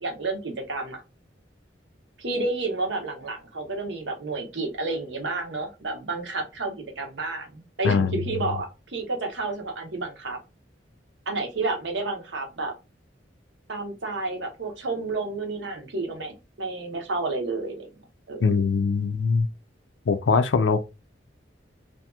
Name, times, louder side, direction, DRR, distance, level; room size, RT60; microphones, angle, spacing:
voice 1, 0.0-1.0 2.2-10.4 11.3-12.7 13.7-17.9 18.3-18.4, right 3 dB, 75° right, 0.9 m, -30 dB
voice 2, 7.8-8.2 18.4-19.5 20.1-20.8, left 5 dB, 85° left, 0.4 m, -22 dB
2.8 x 2.5 x 2.2 m
head